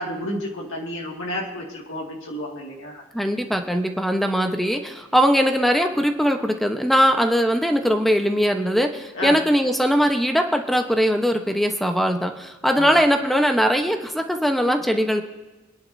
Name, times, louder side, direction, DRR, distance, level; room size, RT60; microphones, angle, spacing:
voice 1, 0.0-3.0 9.1-9.4 12.7-12.9, left 1 dB, 70° left, -3 dB, 2.2 m, -31 dB
voice 2, 3.1-15.2, equal, ahead, 5 dB, 1.0 m, -20 dB
26.5 x 10.5 x 2.8 m, 1.2 s
head